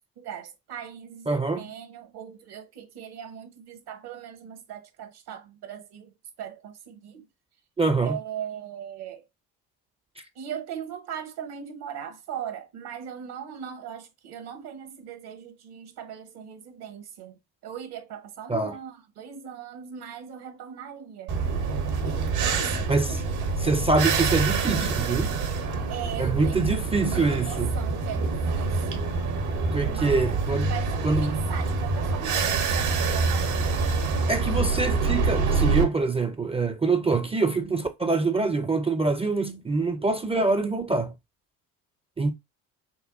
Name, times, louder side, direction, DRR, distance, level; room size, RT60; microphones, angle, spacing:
voice 1, 0.2-7.2 8.0-9.2 10.4-21.4 21.6-21.8 22.4-23.0 25.9-26.8 27.1-29.1 29.8-30.4 30.6-33.9, right 9 dB, 55° right, 1.0 m, -39 dB
voice 2, 1.3-1.7 7.8-8.2 18.5-18.7 22.9-23.2 23.6-25.4 26.2-27.8 29.7-30.7 31.0-31.3 34.3-41.1 42.2-42.3, right 3 dB, 15° right, 0.5 m, -25 dB
sound 1, 21.3-35.8, right 4 dB, 75° right, 1.3 m, -26 dB
5.4 x 2.2 x 2.5 m
hypercardioid pair, 60°, 45 cm